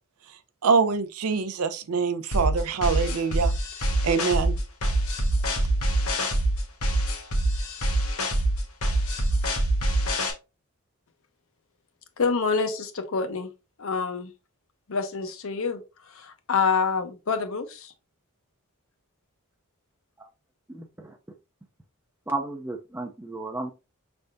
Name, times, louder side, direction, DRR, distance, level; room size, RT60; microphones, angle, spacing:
voice 1, 0.6-3.5 4.0-4.6, right 5 dB, 85° right, 0.5 m, -24 dB
sound 1, 2.3-10.3, right 1 dB, 80° left, 1.1 m, -25 dB
voice 2, 12.2-13.5 13.8-14.3 14.9-17.9, left 5 dB, 65° left, 0.7 m, -27 dB
voice 3, 20.7-21.1 22.3-23.7, right 2 dB, 10° right, 0.4 m, -33 dB
5.4 x 3.4 x 2.5 m
head